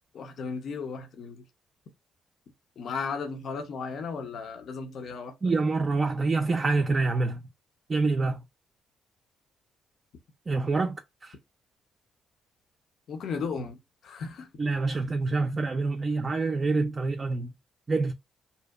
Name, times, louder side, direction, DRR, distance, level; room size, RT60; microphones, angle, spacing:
voice 1, 0.1-1.4 2.8-5.5 13.1-13.8 14.0-14.5, left 5 dB, 65° left, 0.5 m, -35 dB
voice 2, 5.4-7.4 7.9-8.4 10.5-11.3 14.6-17.5 17.9-18.1, right 3 dB, 35° right, 0.3 m, -26 dB
2.7 x 2.1 x 2.2 m
cardioid pair, 90°, 0 cm